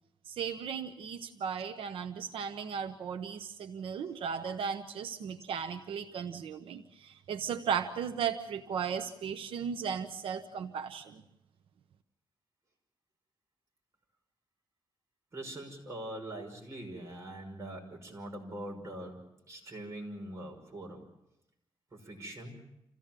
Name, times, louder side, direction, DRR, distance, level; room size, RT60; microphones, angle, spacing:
voice 1, 0.3-11.2, right 7 dB, 85° right, 8 dB, 0.9 m, -36 dB
voice 2, 15.3-21.1 21.9-22.5, right 1 dB, 30° right, 0 dB, 5.7 m, -43 dB
27.5 x 16.0 x 7.4 m, 0.85 s
wide cardioid pair, 135°, 9 cm